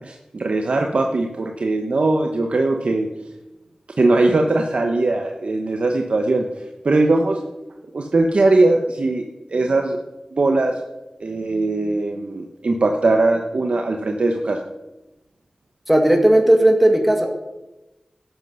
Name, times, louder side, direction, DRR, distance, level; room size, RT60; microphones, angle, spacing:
voice 1, 0.0-3.1 4.0-6.5 6.8-7.4 7.9-10.0 10.3-10.8 11.2-14.6, right 2 dB, 70° right, 3 dB, 1.0 m, -20 dB
voice 2, 15.9-17.3, right 1 dB, 5° right, 3 dB, 1.9 m, -15 dB
13.0 x 8.1 x 5.6 m, 1.0 s
wide cardioid pair, 65°, 2 cm